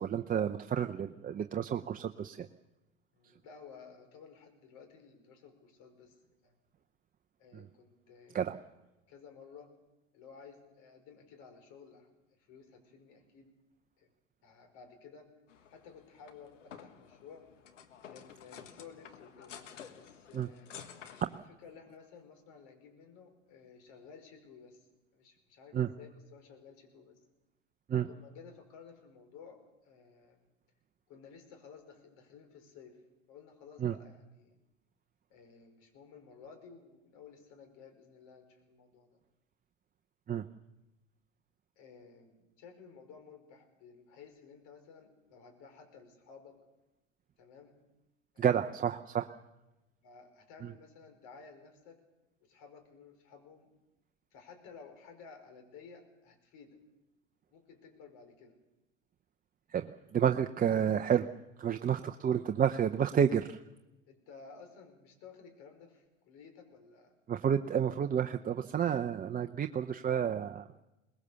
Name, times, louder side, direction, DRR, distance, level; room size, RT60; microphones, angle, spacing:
voice 1, 0.0-2.5 7.5-7.6 8.3-8.6 20.3-20.5 25.7-25.9 27.9-28.1 33.8-33.9 40.3-40.5 48.4-49.3 50.6-50.7 59.7-61.3 61.6-63.6 67.3-70.8, right 8 dB, 25° right, 6 dB, 0.7 m, -30 dB
voice 2, 3.1-6.2 6.4-6.5 7.4-8.6 9.1-9.7 10.1-13.5 14.0-14.1 14.4-15.3 15.7-17.5 18.1-19.6 19.9-20.7 21.6-24.9 25.1-27.2 28.1-30.4 31.1-33.0 33.3-34.6 35.3-39.2 41.8-46.6 47.4-47.8 48.3-48.6 50.0-52.0 52.4-53.7 54.3-56.8 57.5-58.6 64.1-67.1, left 6 dB, 55° left, 5 dB, 5.2 m, -55 dB
sound 1, 15.5-21.4, left 8 dB, 80° left, 1.6 m, -52 dB
22.5 x 20.0 x 7.0 m, 1.0 s
hypercardioid pair, 85°, 37 cm